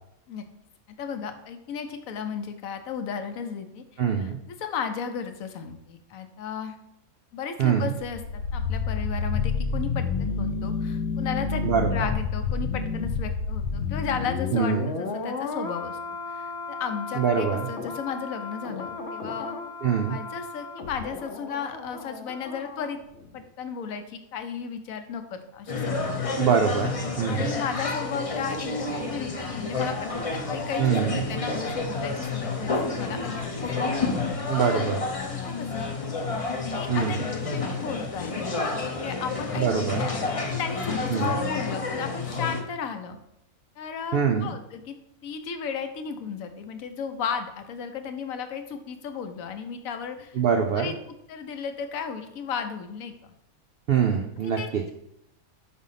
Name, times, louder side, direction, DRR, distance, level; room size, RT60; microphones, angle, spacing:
voice 1, 1.0-6.8 7.3-16.0 16.3-19.6 20.1-23.0 23.3-26.1 27.3-33.9 34.6-34.9 35.3-35.9 36.7-37.2 37.4-38.6 39.0-39.7 40.4-43.2 43.8-45.0 45.2-50.4 50.8-53.1 54.4-54.9, left 6 dB, 70° left, 8 dB, 1.1 m, -35 dB
voice 2, 4.0-4.4 7.6-7.9 11.6-12.1 14.5-14.9 17.2-17.7 19.8-20.2 26.4-27.5 30.8-31.2 34.5-35.0 36.9-37.2 39.6-40.1 41.1-41.4 44.1-44.5 50.4-50.9 53.9-54.8, right 7 dB, 70° right, 3 dB, 0.5 m, -24 dB
sound 1, 8.0-22.9 23.2-23.3, left 4 dB, 55° left, 0.9 m, -31 dB
sound 2, 25.7-42.6, left 3 dB, 35° left, 0.5 m, -30 dB
5.2 x 4.1 x 5.6 m, 0.81 s
omnidirectional pair, 1.5 m